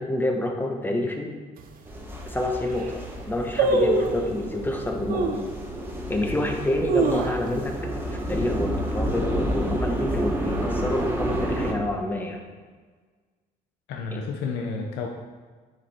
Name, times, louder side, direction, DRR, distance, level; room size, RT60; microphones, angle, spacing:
voice 1, 0.0-1.3 2.3-5.4 6.1-12.4, left 1 dB, 10° left, 2 dB, 1.3 m, -28 dB
sound 1, 1.6-1.7 2.3-2.4 2.6-3.0 3.6-4.3 5.1-5.5 6.0-6.1 6.6-7.8 8.1-8.2 8.5-8.9 9.3-9.6 10.3-11.0 11.3-11.4, right 4 dB, 60° right, 1.0 m, -25 dB
sound 2, 1.8-11.7, right 1 dB, 15° right, 1.3 m, -30 dB
voice 2, 13.9-15.1, left 4 dB, 85° left, 2 dB, 0.8 m, -30 dB
9.5 x 5.2 x 4.4 m, 1.5 s
cardioid pair, 110°, 17 cm